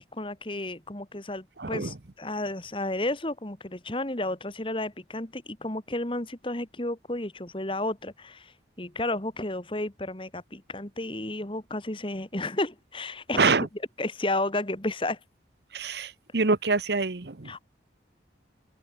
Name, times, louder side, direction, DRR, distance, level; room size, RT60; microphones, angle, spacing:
voice 1, 0.0-8.5 8.8-13.5 14.0-15.2 17.4-17.6, left 2 dB, 30° left, 1.9 m, -32 dB
voice 2, 1.6-1.9 13.4-13.7 15.7-17.5, right 4 dB, 65° right, 1.0 m, -25 dB
head